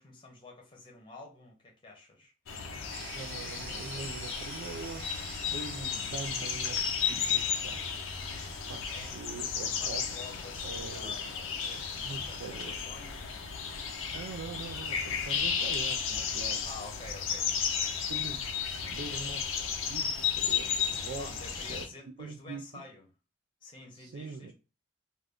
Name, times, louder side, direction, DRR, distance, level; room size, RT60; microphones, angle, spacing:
voice 1, 0.0-2.3 8.9-9.1 9.6-13.5 16.6-17.7 21.2-23.1 23.6-24.5, left 3 dB, 25° left, 0.8 m, -49 dB
Spring Birds Loop with Low-Cut (New Jersey), 2.5-21.9, left 7 dB, 85° left, 0.5 m, -34 dB
sound 1, 2.9-16.6, right 3 dB, 50° right, 0.7 m, -51 dB
voice 2, 3.1-7.9 8.7-10.3 10.6-11.1 12.0-12.8 14.1-16.7 18.1-21.8 22.2-22.8 23.9-24.5, right 4 dB, 70° right, 0.4 m, -43 dB
2.5 x 2.3 x 3.4 m
head